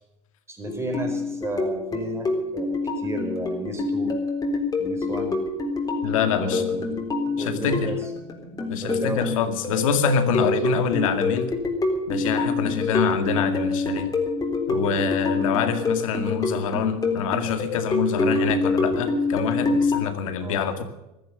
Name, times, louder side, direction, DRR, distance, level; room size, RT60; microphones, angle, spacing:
voice 1, 0.5-4.2 4.8-5.4 6.3-7.0 7.4-8.0 8.6-9.3 20.4-20.6, right 2 dB, 15° right, 4 dB, 4.9 m, -33 dB
sound 1, 0.7-20.0, left 3 dB, 20° left, 3.9 m, -26 dB
voice 2, 6.0-6.6 7.4-7.9 8.7-11.5 12.1-14.1 14.7-20.8, left 7 dB, 85° left, 8 dB, 2.1 m, -25 dB
14.5 x 14.0 x 6.7 m, 0.93 s
supercardioid pair, 110°, 17 cm